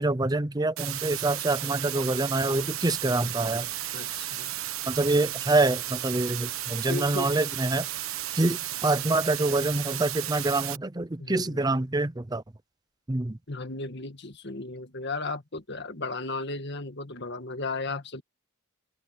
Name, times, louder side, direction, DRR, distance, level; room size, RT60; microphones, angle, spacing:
voice 1, 0.0-3.7 4.9-7.9 8.4-12.4 13.1-13.4, right 2 dB, 20° right, 0.6 m, -26 dB
sound 1, 0.8-10.8, right 13 dB, 80° right, 1.2 m, -34 dB
voice 2, 3.9-4.6 6.9-7.4 11.2-11.6 13.5-18.2, left 3 dB, 55° left, 1.9 m, -35 dB
open air
head